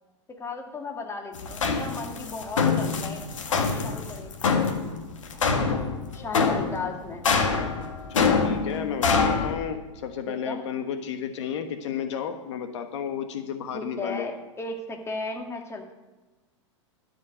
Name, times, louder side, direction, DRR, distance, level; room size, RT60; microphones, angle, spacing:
voice 1, 0.3-3.2 3.5-4.6 6.1-7.3 10.3-10.6 13.7-15.9, left 3 dB, 15° left, 3 dB, 1.8 m, -35 dB
sound 1, 1.3-9.5, left 5 dB, 85° left, 1.7 m, -25 dB
voice 2, 8.1-14.3, left 8 dB, 65° left, 7 dB, 1.2 m, -32 dB
13.0 x 5.3 x 8.3 m, 1.2 s
hypercardioid pair, 110°, 16 cm